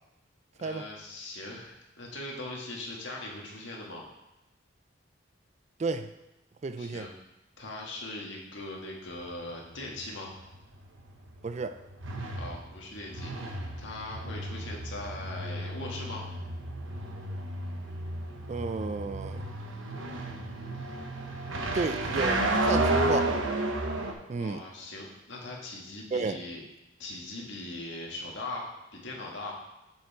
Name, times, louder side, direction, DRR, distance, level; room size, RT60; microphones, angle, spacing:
voice 1, 0.6-4.0 6.8-7.1 7.6-10.3 12.3-16.2 24.4-26.6 27.0-29.5, left 2 dB, 65° left, -2 dB, 1.8 m, -40 dB
voice 2, 5.8-6.1 6.6-7.1 11.4-11.8 18.5-19.4 21.7-23.4 24.3-24.6 26.1-26.4, right 4 dB, 35° right, 10 dB, 0.3 m, -32 dB
sound 1, 9.1-24.1, right 2 dB, 75° right, 1.0 m, -32 dB
6.9 x 6.6 x 4.7 m, 0.95 s
head